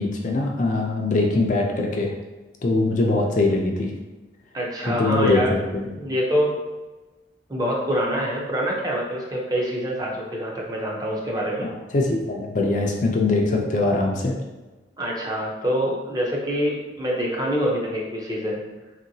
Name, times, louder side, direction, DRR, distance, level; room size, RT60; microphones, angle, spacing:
voice 1, 0.0-2.1 2.6-3.9 4.9-5.4 5.7-5.9 11.6-14.4, left 2 dB, 40° left, 0 dB, 0.4 m, -22 dB
voice 2, 4.5-5.6 5.9-6.6 7.5-11.7 15.0-18.6, equal, 20° right, -2 dB, 0.5 m, -25 dB
3.0 x 2.9 x 2.6 m, 1.1 s
head